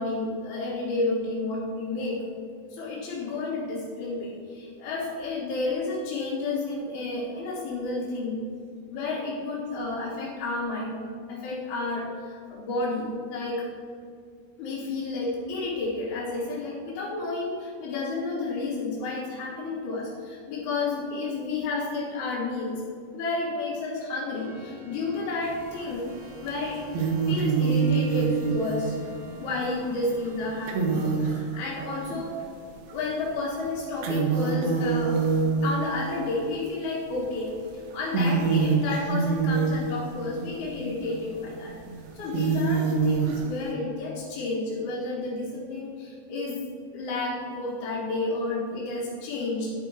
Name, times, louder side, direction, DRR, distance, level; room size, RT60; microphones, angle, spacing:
voice 1, 0.0-2.2 2.7-8.4 8.9-11.0 11.3-13.7 14.6-22.8 23.1-26.1 26.4-26.8 27.3-29.0 29.4-32.4 32.6-35.2 35.6-41.7 42.1-46.6 46.9-49.7, left 3 dB, 85° left, -8 dB, 3.5 m, -31 dB
Organ, 24.3-31.2, right 1 dB, 65° right, 2.6 m, -47 dB
sound 1, 25.5-26.0 26.5-32.3 32.9-33.0 33.4-36.4 37.2-37.5 37.9-43.7, right 5 dB, 80° right, 1.5 m, -26 dB
11.0 x 4.8 x 5.4 m, 2.3 s
omnidirectional pair, 4.4 m